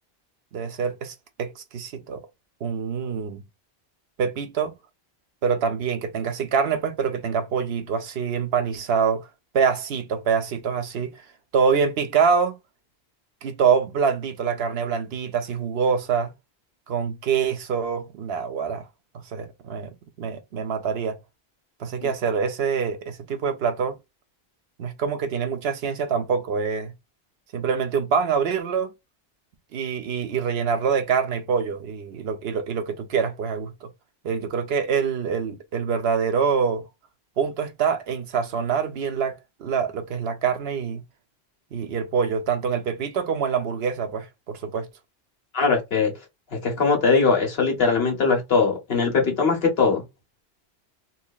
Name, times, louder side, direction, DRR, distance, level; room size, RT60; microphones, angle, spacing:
voice 1, 0.5-2.2 2.6-3.4 4.2-4.7 5.4-9.3 9.5-11.1 11.5-12.5 13.4-16.3 16.9-18.9 19.3-21.2 21.8-24.0 24.8-26.9 27.5-28.9 29.7-33.9 34.2-36.9 37.4-41.0 41.7-44.9, right 6 dB, 80° right, 1.0 m, -25 dB
voice 2, 45.5-46.1 46.5-50.0, left 4 dB, 70° left, 1.6 m, -21 dB
4.2 x 2.8 x 2.3 m
omnidirectional pair, 1.0 m